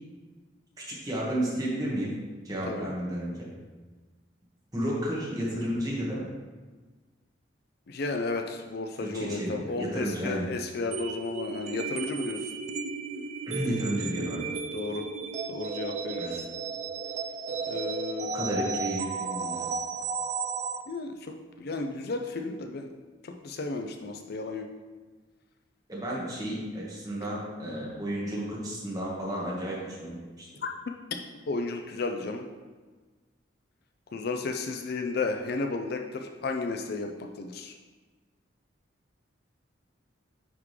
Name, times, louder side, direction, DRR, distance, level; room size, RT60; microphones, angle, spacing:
voice 1, 0.8-2.1 2.4-3.5 4.7-6.3 9.0-10.5 13.5-14.5 16.2-16.4 18.3-19.7 25.9-30.5, right 1 dB, 20° right, -6 dB, 1.6 m, -32 dB
voice 2, 7.9-12.4 14.7-15.1 15.5-16.4 17.7-18.5 20.9-22.9 23.2-24.7 30.6-30.7 31.5-32.4 34.1-37.7, left 3 dB, 55° left, 4 dB, 0.4 m, -33 dB
sound 1, 10.9-20.8, right 5 dB, 35° right, 0.3 m, -34 dB
9.5 x 3.6 x 3.2 m, 1.3 s
head